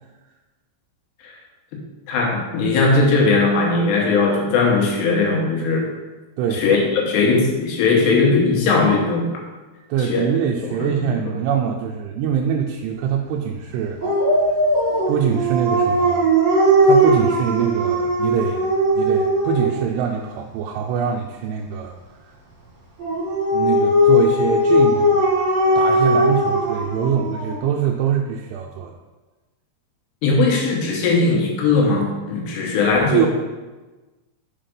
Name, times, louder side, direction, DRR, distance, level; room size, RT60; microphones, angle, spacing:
voice 1, 2.1-5.9 6.5-9.3 10.0-10.3 10.6-11.1 30.2-33.3, left 3 dB, 80° left, -1 dB, 3.3 m, -19 dB
voice 2, 9.9-14.0 15.1-16.3 16.8-18.7 19.0-22.0 23.5-25.3 25.7-28.9 33.1-33.3, right 8 dB, 85° right, 1 dB, 2.6 m, -23 dB
Dog, 14.0-19.8 23.0-27.6, equal, 45° right, 1.8 m, -18 dB
7.4 x 4.4 x 5.2 m, 1.2 s
omnidirectional pair, 4.9 m